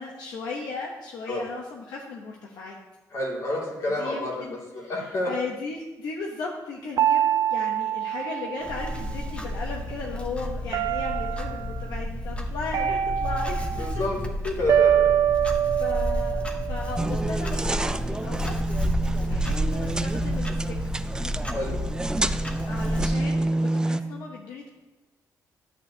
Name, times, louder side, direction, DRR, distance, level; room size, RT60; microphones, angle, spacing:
voice 1, 0.0-2.8 3.8-13.9 15.8-18.6 19.1-21.0 22.7-24.7, left 4 dB, 85° left, 0 dB, 1.0 m, -36 dB
voice 2, 3.1-5.3 13.8-15.1 21.5-21.8, left 1 dB, 55° left, -3 dB, 2.6 m, -29 dB
sound 1, 7.0-9.3 10.7-11.7 12.7-14.0 14.7-17.1, right 10 dB, 70° right, 0.5 m, -25 dB
Clock, 8.6-23.1, equal, 20° left, 1.0 m, -31 dB
sound 2, 17.0-24.0, right 2 dB, 10° right, 0.3 m, -28 dB
10.5 x 8.7 x 2.9 m, 1.1 s
cardioid pair, 115°, 6 cm